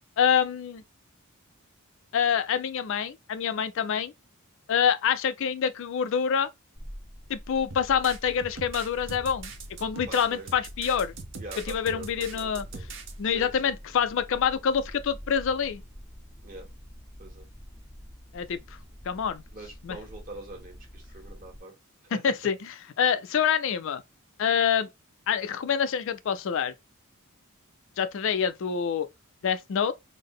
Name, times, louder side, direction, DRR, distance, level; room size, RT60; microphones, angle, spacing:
voice 1, 0.2-0.8 2.1-4.1 4.7-6.5 7.3-9.5 9.8-11.1 11.7-12.6 13.2-15.8 18.3-18.6 19.0-19.4 19.8-20.0 22.2-22.6 23.0-24.0 24.4-24.9 25.3-26.7 28.0-29.1 29.4-29.9, left 7 dB, 60° left, 0.4 m, -26 dB
sound 1, 6.7-21.6, equal, ahead, 0.5 m, -47 dB
sound 2, 7.7-13.1, right 3 dB, 60° right, 0.7 m, -41 dB
voice 2, 10.1-10.5 11.4-12.9 13.2-13.7 16.4-16.7 17.2-17.5 19.5-21.8 22.1-22.2, right 2 dB, 40° right, 1.4 m, -44 dB
3.7 x 2.1 x 3.6 m
head